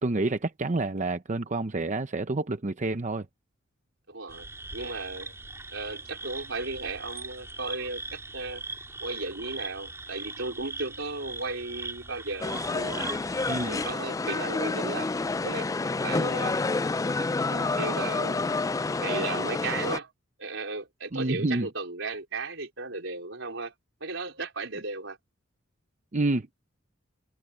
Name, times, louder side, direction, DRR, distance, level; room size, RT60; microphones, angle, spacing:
voice 1, 0.0-3.3 13.5-13.8 21.1-21.7 26.1-26.5, right 2 dB, 40° right, 0.7 m, -28 dB
voice 2, 4.1-5.3 5.7-8.6 9.0-13.1 13.6-15.2 15.4-15.7 16.0-16.6 17.2-18.6 19.0-20.1 20.4-23.7 24.0-25.2, right 3 dB, 75° right, 4.5 m, -35 dB
sound 1, 4.3-13.9, right 3 dB, 15° right, 3.5 m, -40 dB
sound 2, 12.4-20.0, left 3 dB, 15° left, 0.3 m, -29 dB
head